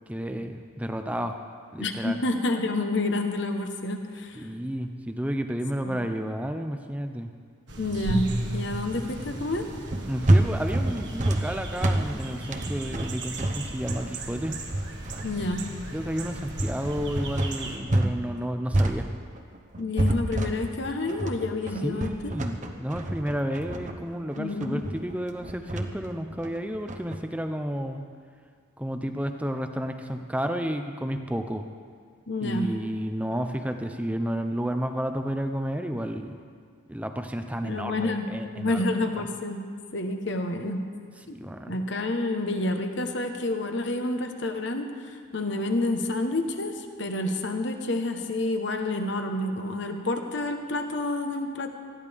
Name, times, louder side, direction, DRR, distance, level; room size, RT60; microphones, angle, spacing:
voice 1, 0.1-1.4 1.7-2.2 4.3-7.3 10.1-14.6 15.9-19.1 21.8-28.1 28.8-31.6 32.4-36.4 36.9-38.8 39.2-39.3 41.3-41.8, equal, 5° right, 6 dB, 0.6 m, -31 dB
voice 2, 1.8-4.5 5.8-6.0 7.8-9.7 15.2-15.6 19.8-22.3 24.4-24.8 32.3-32.7 37.6-38.3 38.5-39.6 39.9-40.8 41.7-51.7, left 2 dB, 55° left, 5 dB, 1.1 m, -29 dB
sound 1, 7.7-17.8, right 1 dB, 60° right, 1.6 m, -36 dB
sound 2, 9.9-18.2 18.4-27.2, right 1 dB, 35° right, 0.9 m, -27 dB
19.5 x 14.5 x 3.6 m, 2.1 s
head